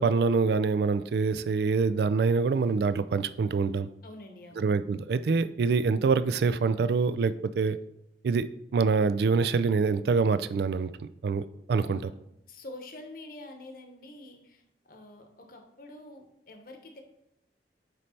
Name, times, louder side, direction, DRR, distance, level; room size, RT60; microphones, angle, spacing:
voice 1, 0.0-3.9 4.6-7.8 8.2-8.4 8.7-10.9 11.2-12.1, right 4 dB, 65° right, 13 dB, 0.3 m, -25 dB
voice 2, 4.0-4.7 11.8-12.1 12.5-17.0, left 2 dB, 55° left, 4 dB, 1.0 m, -47 dB
9.3 x 3.2 x 4.3 m, 0.80 s
head